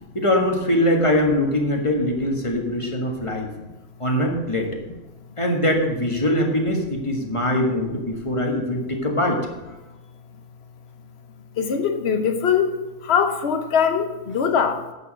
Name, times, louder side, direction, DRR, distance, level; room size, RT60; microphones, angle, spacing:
voice 1, 0.1-3.5 4.0-4.7 5.4-9.4, left 1 dB, 20° left, 1 dB, 1.6 m, -22 dB
voice 2, 11.6-12.7 13.0-14.8, left 7 dB, 50° left, 7 dB, 1.2 m, -22 dB
8.2 x 7.0 x 6.4 m, 1.1 s
omnidirectional pair, 1.4 m